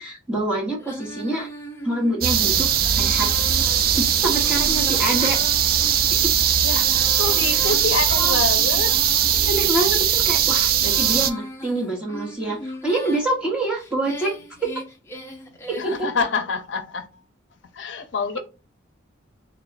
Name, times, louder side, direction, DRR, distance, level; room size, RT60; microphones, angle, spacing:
voice 1, 0.0-1.5 1.8-3.3 4.0-5.4 6.2-6.3 9.3-14.3 14.6-14.7 15.7-16.1, right 1 dB, 5° right, 1.1 m, -26 dB
Female singing, 0.8-9.7 10.3-13.3 13.8-16.1, equal, 15° left, 0.5 m, -37 dB
sound 1, 2.2-11.3, right 9 dB, 45° right, 0.3 m, -20 dB
voice 2, 6.6-9.0 15.8-17.1 17.7-18.4, left 4 dB, 70° left, 0.5 m, -27 dB
3.4 x 2.4 x 3.9 m
head